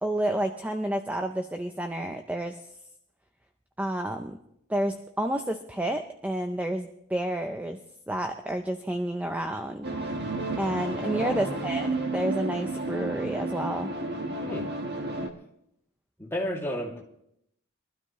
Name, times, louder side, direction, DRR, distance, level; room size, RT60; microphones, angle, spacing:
voice 1, 0.0-2.6 3.8-4.4 4.7-7.8 8.1-9.9 10.6-13.9, right 1 dB, 5° right, 6 dB, 0.6 m, -30 dB
sound 1, 9.8-15.3, right 2 dB, 50° right, 1.5 m, -31 dB
voice 2, 11.0-11.6 14.4-14.7 16.2-17.0, equal, 10° left, -2 dB, 2.5 m, -33 dB
22.5 x 12.5 x 3.1 m, 0.76 s
head